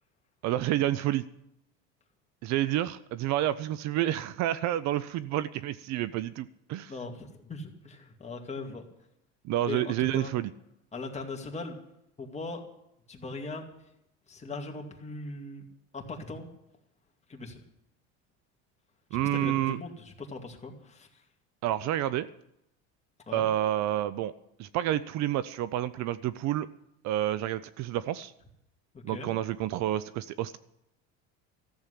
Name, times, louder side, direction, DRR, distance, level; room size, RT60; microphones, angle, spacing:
voice 1, 0.4-1.2 2.4-6.9 9.4-10.5 19.1-19.8 21.6-22.3 23.3-24.3 24.6-26.7 27.0-28.3 29.0-30.6, right 13 dB, 55° right, 16 dB, 0.6 m, -29 dB
voice 2, 6.9-8.9 9.7-10.3 10.9-11.8 12.2-12.7 13.1-13.6 14.3-15.7 15.9-16.5 17.3-17.6 19.1-21.2 23.3-23.5 28.9-29.3, left 3 dB, 20° left, 2 dB, 2.3 m, -39 dB
14.0 x 7.3 x 9.9 m, 0.81 s
supercardioid pair, 125°, 35 cm